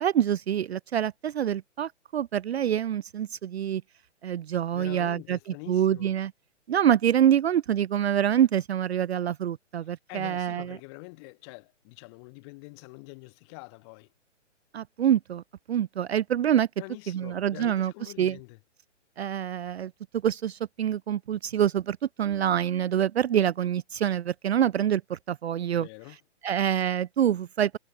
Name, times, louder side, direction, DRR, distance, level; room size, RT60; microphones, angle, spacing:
voice 1, 0.0-3.8 4.2-5.4 5.7-6.3 6.7-10.8 14.7-15.4 15.7-16.7 17.1-17.9 18.2-18.4 19.2-25.9 26.4-27.8, right 10 dB, 60° right, 0.6 m, -26 dB
voice 2, 4.7-6.1 9.8-14.1 16.8-18.6 25.7-26.2, left 30 dB, 20° left, 3.2 m, -45 dB
hypercardioid pair, 165°, 37 cm